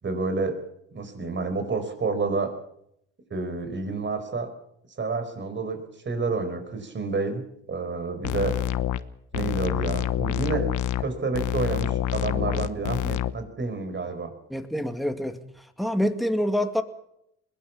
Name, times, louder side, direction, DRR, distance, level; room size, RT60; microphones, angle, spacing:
voice 1, 0.0-0.6 0.9-2.5 3.3-4.5 5.0-5.8 6.0-8.5 9.3-10.7 11.0-14.3, right 4 dB, 40° right, 8 dB, 4.7 m, -29 dB
sound 1, 8.2-9.0 9.3-11.0 11.3-13.3, left 11 dB, 80° left, 1.1 m, -27 dB
voice 2, 14.5-16.8, equal, ahead, 7 dB, 2.1 m, -27 dB
21.5 x 17.0 x 7.1 m, 0.75 s
cardioid pair, 90°, 30 cm